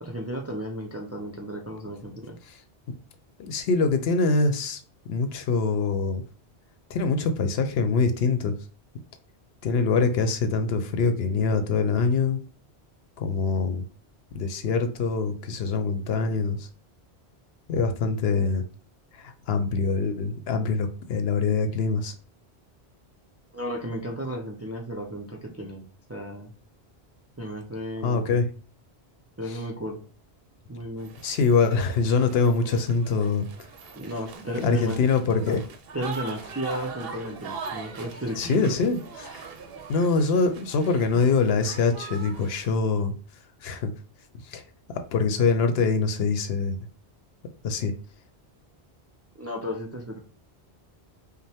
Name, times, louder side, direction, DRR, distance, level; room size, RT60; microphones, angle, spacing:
voice 1, 0.0-2.4 23.5-26.5 27.4-28.4 29.4-30.0 30.7-31.1 34.0-35.0 35.4-35.6 35.9-38.7 41.1-41.3 49.4-50.2, equal, 20° right, 1 dB, 0.4 m, -34 dB
voice 2, 3.4-4.8 5.1-6.2 6.9-8.5 9.6-12.4 13.2-13.8 14.3-16.7 17.7-18.6 19.1-22.1 28.0-28.5 29.5-29.6 31.2-33.5 34.6-35.6 38.4-39.5 39.9-43.1 43.6-43.9 44.5-44.6 45.1-46.8 47.6-47.9, left 4 dB, 70° left, 8 dB, 0.8 m, -24 dB
sound 1, 31.0-42.8, right 5 dB, 65° right, 0.8 m, -42 dB
5.3 x 2.2 x 3.4 m, 0.38 s
omnidirectional pair, 1.1 m